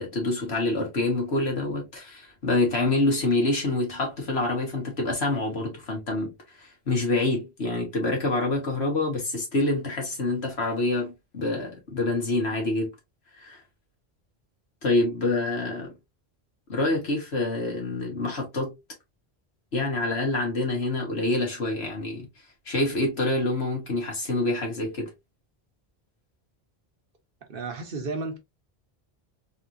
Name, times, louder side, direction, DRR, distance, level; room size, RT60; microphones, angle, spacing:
voice 1, 0.0-12.9 13.3-13.6 14.8-15.9 16.7-18.7 19.7-22.3 22.7-25.1, left 2 dB, 85° left, 1.9 m, -26 dB
voice 2, 27.5-28.4, right 3 dB, 60° right, 1.2 m, -32 dB
4.1 x 3.0 x 2.6 m
omnidirectional pair, 1.1 m